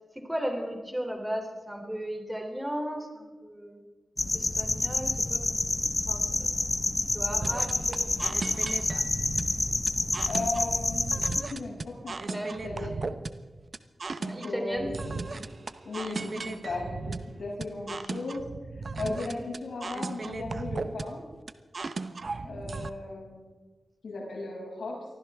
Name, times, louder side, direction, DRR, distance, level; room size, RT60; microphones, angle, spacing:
voice 1, 0.3-3.8 4.3-6.5 7.1-8.9 12.3-12.5 14.3-14.9 19.0-19.4 22.2-22.5, equal, 10° right, 2 dB, 3.1 m, -36 dB
sound 1, 4.2-11.4, left 2 dB, 30° left, 1.3 m, -28 dB
sound 2, 7.4-22.9, right 3 dB, 55° right, 0.8 m, -36 dB
voice 2, 10.3-12.9 14.2-15.2 15.8-18.4 18.7-21.2 22.4-23.4 24.0-25.0, left 3 dB, 80° left, -3 dB, 6.9 m, -36 dB
24.0 x 15.0 x 3.6 m, 1.3 s
wide cardioid pair, 70°, 0 cm